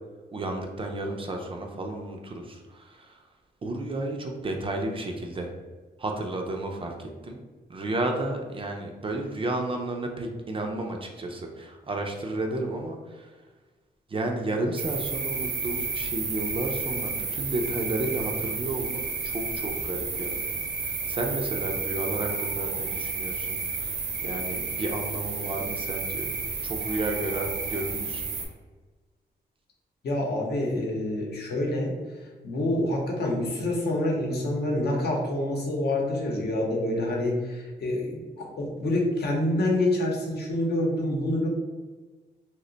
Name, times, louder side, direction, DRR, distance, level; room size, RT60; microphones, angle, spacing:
voice 1, 0.3-3.2 3.6-5.5 6.0-7.4 7.7-13.3 14.1-20.6 20.8-26.4 26.6-28.2, right 2 dB, 30° right, 2 dB, 0.4 m, -32 dB
sound 1, 14.8-28.4, right 4 dB, 70° right, 0.6 m, -31 dB
voice 2, 30.0-41.5, left 1 dB, 65° left, -1 dB, 0.8 m, -27 dB
2.8 x 2.1 x 3.8 m, 1.3 s
wide cardioid pair, 155°, 18 cm